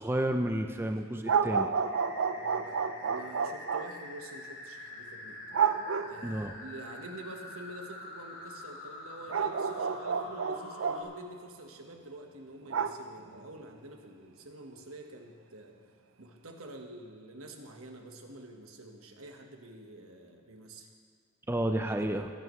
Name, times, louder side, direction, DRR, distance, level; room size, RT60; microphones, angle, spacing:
voice 1, 0.0-1.7 6.2-6.5 21.5-22.3, right 1 dB, 10° right, 5 dB, 0.5 m, -31 dB
sound 1, 1.3-3.9 5.5-6.4 9.3-11.1 12.7-13.4, right 6 dB, 70° right, 0.5 m, -30 dB
sound 2, 1.8-11.0, left 2 dB, 80° left, 3.1 m, -46 dB
voice 2, 2.3-5.4 6.1-15.8 16.2-20.9 21.9-22.2, right 1 dB, 90° right, 3 dB, 1.4 m, -47 dB
22.0 x 10.5 x 3.2 m, 2.1 s
head